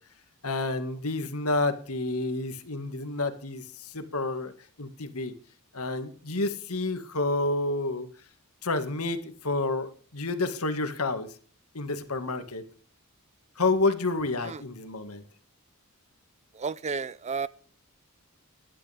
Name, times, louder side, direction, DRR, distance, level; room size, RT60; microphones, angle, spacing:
voice 1, 0.4-4.5 4.8-5.3 5.7-8.1 8.6-11.3 11.7-12.6 13.6-15.2, left 2 dB, 75° left, 1.9 m, -29 dB
voice 2, 16.6-17.5, right 5 dB, 30° right, 0.5 m, -32 dB
15.5 x 11.5 x 3.5 m
head